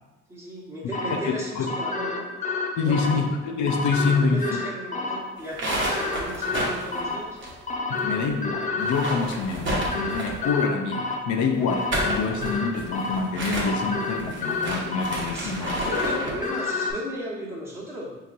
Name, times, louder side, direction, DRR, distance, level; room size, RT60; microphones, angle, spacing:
voice 1, 0.3-2.3 2.7-3.2 4.1-7.4 15.3-18.1, equal, 10° right, -6 dB, 1.2 m, -35 dB
sound 1, 0.9-16.9, left 3 dB, 25° left, 0.5 m, -30 dB
voice 2, 1.1-1.7 2.8-4.6 7.9-16.1, left 4 dB, 75° left, 4 dB, 0.6 m, -26 dB
sound 2, 5.4-8.0 8.3-8.4 8.7-10.5 11.6-16.5, right 1 dB, 40° right, 1.0 m, -31 dB
4.3 x 2.9 x 2.5 m, 1.1 s
cardioid pair, 90°, 30 cm